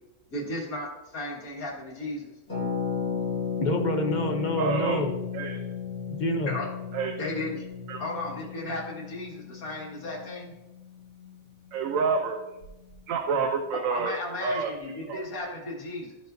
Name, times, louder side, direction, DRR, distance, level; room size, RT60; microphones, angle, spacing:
voice 1, 0.3-2.3 6.5-6.7 7.2-7.6 8.0-10.5 13.9-16.2, left 2 dB, 85° left, -3 dB, 2.1 m, -35 dB
Harp, 2.5-12.1 12.4-12.5 12.6-12.9, left 6 dB, 60° left, 3.1 m, -35 dB
voice 2, 3.6-5.1 6.1-6.6, left 1 dB, 40° left, 5 dB, 0.7 m, -27 dB
voice 3, 4.6-5.0 5.3-5.6 6.9-7.1 7.9-8.0 11.7-12.4 13.1-15.3, right 5 dB, 75° right, 4 dB, 1.1 m, -28 dB
13.5 x 5.2 x 2.6 m, 1.0 s
omnidirectional pair, 1.5 m